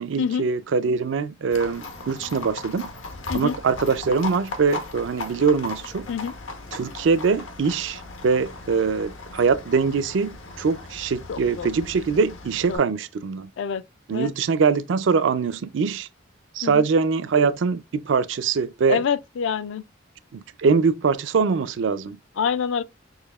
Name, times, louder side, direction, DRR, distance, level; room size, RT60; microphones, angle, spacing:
voice 1, 0.0-2.9 3.3-6.1 6.7-13.5 14.1-16.1 16.5-19.0 20.3-22.2, right 5 dB, 70° right, 0.4 m, -23 dB
Livestock farm animals working animals, 1.5-12.8, left 2 dB, 85° left, 0.9 m, -37 dB
voice 2, 11.3-11.7 12.7-12.8 13.6-13.8 14.1-14.3 16.6-16.8 18.9-19.8 22.4-22.8, left 7 dB, 70° left, 0.4 m, -26 dB
6.5 x 2.7 x 2.3 m
head